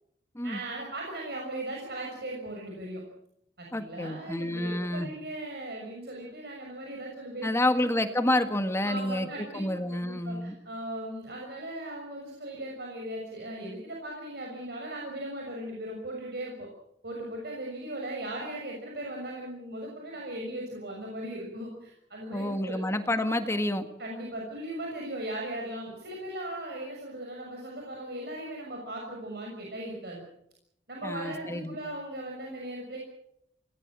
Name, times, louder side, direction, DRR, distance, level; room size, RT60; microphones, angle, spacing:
voice 1, 0.4-3.0 3.6-7.9 8.8-16.7 17.0-22.8 24.0-30.3 30.9-33.0, right 1 dB, 65° right, -1 dB, 6.4 m, -38 dB
voice 2, 3.7-5.1 7.4-10.5 22.3-23.9 31.0-31.8, left 1 dB, 15° left, 8 dB, 1.7 m, -29 dB
26.0 x 19.5 x 7.5 m, 0.76 s
head